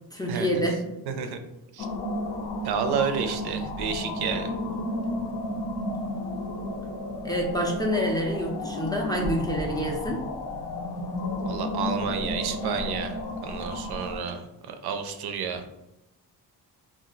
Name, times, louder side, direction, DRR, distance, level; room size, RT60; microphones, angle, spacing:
voice 1, 0.1-1.0 7.2-10.2, equal, 10° left, -1 dB, 0.4 m, -27 dB
voice 2, 1.1-1.4 1.7-1.9 2.6-4.5 11.5-13.2 13.4-15.7, right 6 dB, 75° right, 7 dB, 0.5 m, -30 dB
sound 1, 1.8-14.2, left 1 dB, 75° left, 0.6 m, -32 dB
2.4 x 2.0 x 3.7 m, 0.90 s
cardioid pair, 120°, 39 cm